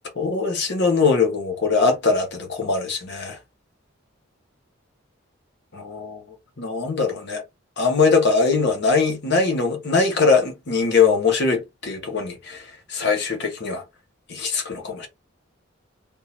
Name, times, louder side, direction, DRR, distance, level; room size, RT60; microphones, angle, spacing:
voice 1, 0.2-3.4 5.7-6.2 6.6-7.4 7.8-13.8 14.3-15.1, left 4 dB, 60° left, 1.1 m, -21 dB
3.5 x 2.8 x 2.9 m
head